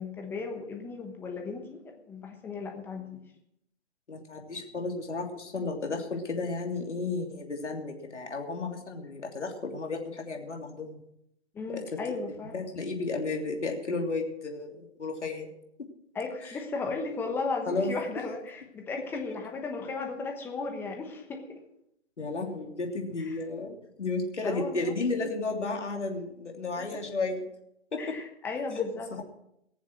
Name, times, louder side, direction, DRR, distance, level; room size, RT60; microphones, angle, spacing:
voice 1, 0.0-1.8 2.1-3.2 11.5-12.5 16.1-21.6 23.3-23.4 24.4-24.9 26.8-27.0 28.0-29.1, left 4 dB, 5° left, 3 dB, 1.1 m, -35 dB
voice 2, 4.1-11.0 11.7-11.8 12.5-15.5 17.7-17.9 22.2-27.4 28.7-28.9 29.1-29.2, left 3 dB, 85° left, 1 dB, 3.2 m, -33 dB
20.0 x 7.4 x 6.4 m, 0.79 s
hypercardioid pair, 150°, 35 cm